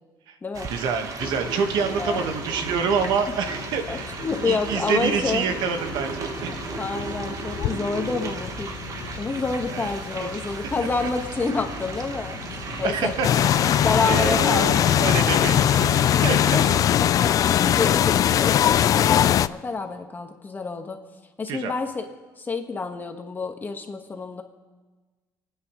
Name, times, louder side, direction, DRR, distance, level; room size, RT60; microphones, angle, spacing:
sound 1, 0.5-16.8, right 4 dB, 45° right, 1.3 m, -35 dB
voice 1, 0.7-6.7 9.7-9.9 10.2-10.3 11.0-11.1 12.8-13.7 14.0-16.6 21.5-21.7, right 6 dB, 70° right, 6 dB, 1.4 m, -27 dB
sound 2, 1.2-16.5, left 10 dB, 70° left, 0.7 m, -39 dB
voice 2, 3.9-5.5 6.5-8.8 9.2-12.4 12.8-13.2 13.8-14.8 16.5-16.7 17.0-21.0 21.4-22.0 22.4-24.4, left 4 dB, 25° left, 5 dB, 1.4 m, -28 dB
sound 3, 13.2-19.5, left 10 dB, 50° left, 0.4 m, -19 dB
28.5 x 9.6 x 3.1 m, 1.3 s
cardioid pair, 110°, 8 cm